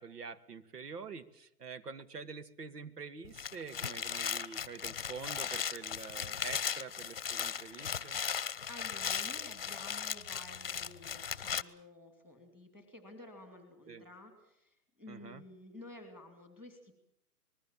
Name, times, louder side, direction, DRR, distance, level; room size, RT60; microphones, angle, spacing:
voice 1, 0.0-8.2 13.9-14.0 15.1-15.4, right 5 dB, 85° right, 11 dB, 2.4 m, -46 dB
sound 1, 3.2-11.6, left 7 dB, 40° left, 0.9 m, -37 dB
voice 2, 8.7-16.9, left 1 dB, 5° right, 6 dB, 2.5 m, -52 dB
26.0 x 20.5 x 7.4 m, 0.75 s
hypercardioid pair, 175°, 46 cm